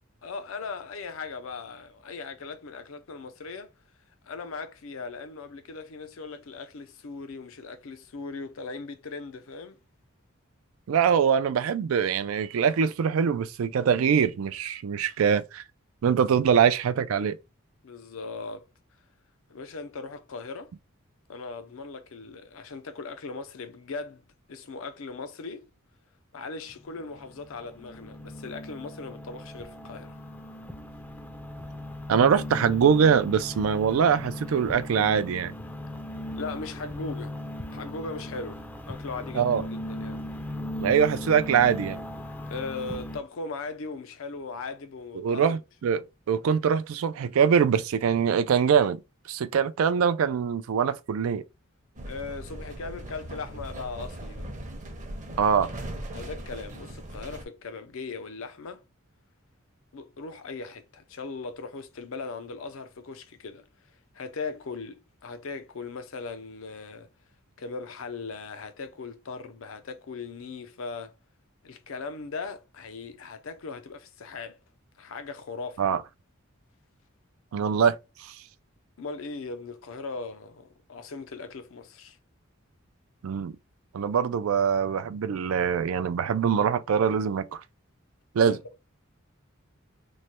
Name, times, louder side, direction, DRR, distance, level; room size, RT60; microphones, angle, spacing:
voice 1, 0.2-3.7 4.2-9.8 17.8-18.6 19.5-20.7 21.3-24.2 24.5-25.7 26.3-30.2 36.3-37.3 37.7-40.2 42.5-45.6 52.0-54.5 56.1-58.8 59.9-63.7 64.1-67.1 67.6-71.1 71.6-74.6 75.0-75.9 79.0-82.2 88.4-88.6, left 4 dB, 70° left, 0.6 m, -38 dB
voice 2, 10.9-15.6 16.0-17.4 32.1-35.5 39.3-39.6 40.8-42.0 45.2-46.0 46.3-49.0 49.3-51.4 55.4-55.7 75.8-76.0 77.5-78.3 83.2-83.6 83.9-87.6 88.3-88.6, right 7 dB, 80° right, 0.4 m, -23 dB
sound 1, 26.7-43.2, left 1 dB, 10° left, 0.4 m, -38 dB
sound 2, 51.9-57.4, right 1 dB, 35° right, 0.7 m, -39 dB
3.1 x 2.1 x 4.1 m
head